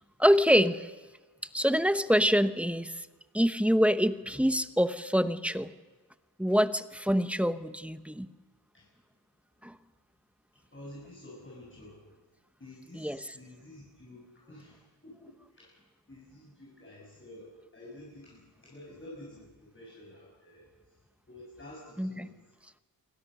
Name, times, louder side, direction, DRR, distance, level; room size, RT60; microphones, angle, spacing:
voice 1, 0.2-0.9 1.5-2.9 3.3-5.7 6.4-8.3 9.6-9.7 12.9-13.3 22.0-22.3, equal, 5° right, 10 dB, 0.9 m, -25 dB
voice 2, 10.7-12.0 12.6-15.8 16.1-20.7 21.3-22.3, left 1 dB, 30° left, -3 dB, 7.6 m, -50 dB
27.0 x 24.5 x 6.7 m, 1.3 s
wide cardioid pair, 135°, 42 cm